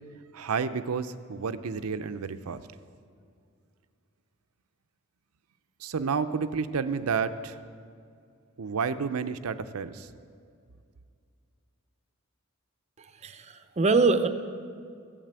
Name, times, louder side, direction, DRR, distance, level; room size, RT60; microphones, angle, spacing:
voice 1, 0.3-2.6 5.8-7.6 8.6-10.1, right 5 dB, 85° right, 11 dB, 0.6 m, -30 dB
voice 2, 13.0-14.3, right 4 dB, 30° right, 9 dB, 0.6 m, -24 dB
14.5 x 7.5 x 8.1 m, 2.3 s
head